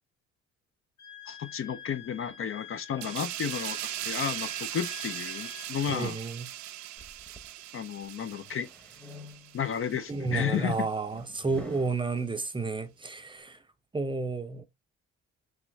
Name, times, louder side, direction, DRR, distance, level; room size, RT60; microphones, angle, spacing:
Wind instrument woodwind instrument, 1.0-5.7, left 11 dB, 65° left, 1.5 m, -48 dB
voice 1, 1.3-3.8 4.1-6.2 7.7-8.7 9.5-10.9, left 8 dB, 45° left, 0.4 m, -32 dB
sound 1, 3.0-10.2 10.5-10.8, right 13 dB, 70° right, 0.4 m, -39 dB
voice 2, 5.9-6.5 10.1-13.6 13.9-14.6, right 4 dB, 15° right, 0.5 m, -31 dB
sound 2, 7.0-7.5 8.0-9.7 10.2-12.0, equal, 5° left, 0.9 m, -47 dB
3.6 x 3.0 x 3.1 m
cardioid pair, 90°, 30 cm